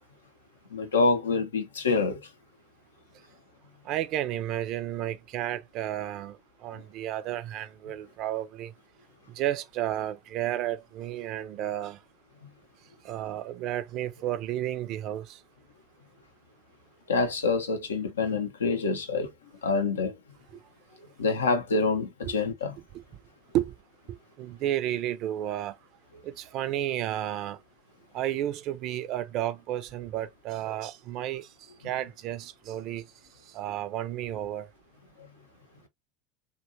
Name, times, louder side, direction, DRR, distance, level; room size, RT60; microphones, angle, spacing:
voice 1, 0.7-2.2 17.1-19.3 19.6-20.2 21.2-22.8, left 3 dB, 75° left, 0.5 m, -26 dB
voice 2, 3.8-8.7 9.3-12.0 13.0-15.4 22.2-22.3 22.9-23.0 23.5-23.7 24.4-25.8 26.2-27.6 28.1-31.5 31.8-33.1 33.5-34.7, right 12 dB, 50° right, 0.4 m, -32 dB
2.7 x 2.2 x 2.5 m
figure-of-eight pair, 80°, 0 cm